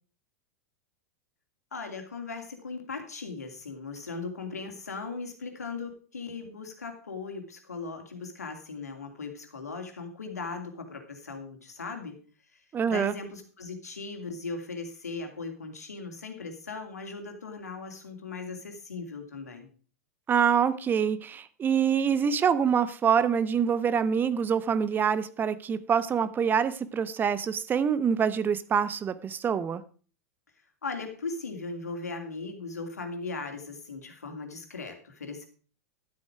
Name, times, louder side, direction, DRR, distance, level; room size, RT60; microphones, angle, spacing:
voice 1, 1.7-12.1 12.5-12.6 12.9-19.7 30.8-35.4, left 4 dB, 80° left, 2.7 m, -38 dB
voice 2, 12.7-13.1 20.3-29.8, right 7 dB, 25° right, 0.9 m, -25 dB
12.5 x 8.3 x 4.8 m
figure-of-eight pair, 95°, 8 cm